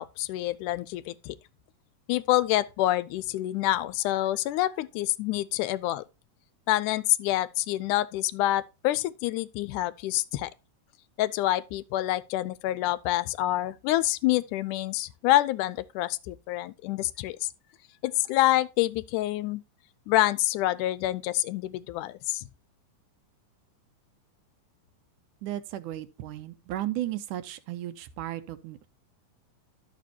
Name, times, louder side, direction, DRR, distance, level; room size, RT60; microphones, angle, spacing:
voice 1, 0.0-1.4 2.1-6.0 6.7-10.5 11.2-17.5 18.0-19.6 20.1-22.4, left 15 dB, 80° left, 2.0 m, -27 dB
voice 2, 25.4-28.9, right 14 dB, 80° right, 2.3 m, -35 dB
11.5 x 6.9 x 2.8 m
omnidirectional pair, 3.6 m